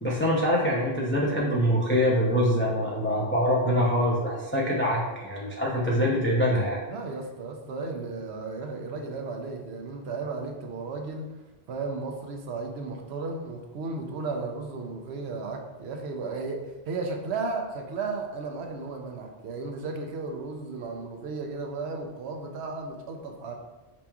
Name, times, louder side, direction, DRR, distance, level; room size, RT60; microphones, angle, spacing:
voice 1, 0.0-6.8, equal, 20° left, -4 dB, 0.4 m, -24 dB
voice 2, 6.9-11.4 11.7-23.5, right 3 dB, 75° right, 3 dB, 0.9 m, -34 dB
5.1 x 2.9 x 2.3 m, 1.2 s
omnidirectional pair, 1.1 m